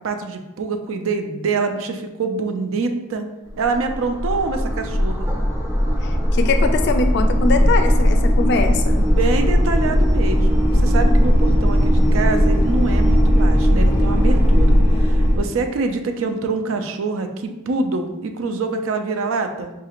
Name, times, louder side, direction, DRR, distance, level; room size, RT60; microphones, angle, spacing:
voice 1, 0.0-3.3 3.6-5.3 8.8-19.7, right 3 dB, 80° right, 6 dB, 0.4 m, -25 dB
sound 1, 3.5-15.4, equal, 10° right, 0.6 m, -17 dB
voice 2, 6.3-9.0, left 4 dB, 55° left, 6 dB, 0.3 m, -21 dB
4.7 x 2.5 x 2.9 m, 1.0 s
head